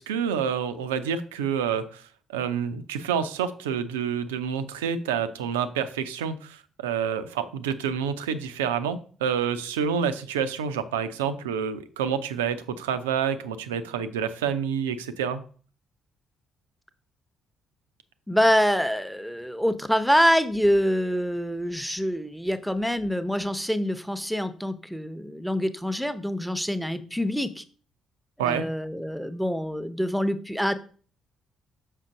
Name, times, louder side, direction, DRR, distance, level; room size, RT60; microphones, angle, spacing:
voice 1, 0.0-15.4 28.4-28.6, right 7 dB, 75° right, 12 dB, 0.5 m, -28 dB
voice 2, 18.3-27.6 28.4-30.7, equal, ahead, 13 dB, 0.8 m, -25 dB
6.5 x 5.7 x 3.9 m, 0.42 s
figure-of-eight pair, 45°, 0 cm